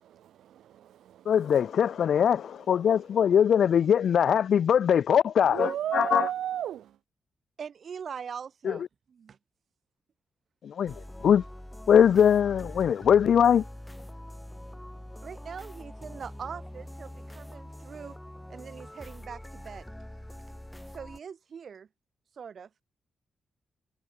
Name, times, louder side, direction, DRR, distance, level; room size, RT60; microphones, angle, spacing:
voice 1, 0.1-2.9 5.4-7.0, right 11 dB, 85° right, 2.5 m, -36 dB
voice 2, 1.3-6.3 8.6-8.8 10.6-10.9 11.2-11.4 11.9-13.6, left 8 dB, 70° left, 0.5 m, -22 dB
voice 3, 7.6-9.4 15.2-18.2 18.5-19.9 20.9-21.9 22.4-22.7, right 7 dB, 60° right, 2.8 m, -42 dB
sound 1, 10.9-21.2, left 1 dB, 5° left, 2.5 m, -44 dB
cardioid pair, 80°, 0 cm